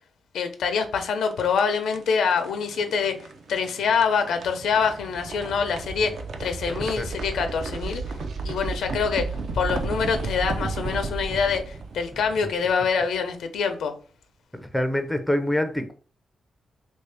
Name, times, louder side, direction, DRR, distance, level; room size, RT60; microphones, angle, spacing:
voice 1, 0.3-6.1 6.4-8.0 8.4-13.9, left 6 dB, 90° left, 0.6 m, -25 dB
sound 1, 1.0-13.1, right 3 dB, 60° right, 0.4 m, -34 dB
voice 2, 14.5-15.9, left 1 dB, ahead, 0.4 m, -26 dB
3.2 x 2.6 x 3.4 m
wide cardioid pair, 150°, 0 cm